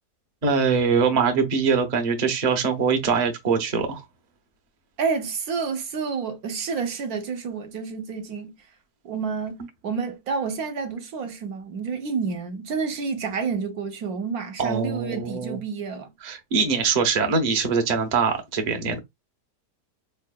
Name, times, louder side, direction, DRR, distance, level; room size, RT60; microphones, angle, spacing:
voice 1, 0.4-4.0 14.6-15.6 16.2-19.0, right 5 dB, 40° right, 0.7 m, -23 dB
voice 2, 5.0-8.5 9.0-9.6 9.8-16.1, right 5 dB, 65° right, 1.2 m, -29 dB
4.5 x 3.2 x 2.2 m
omnidirectional pair, 1.8 m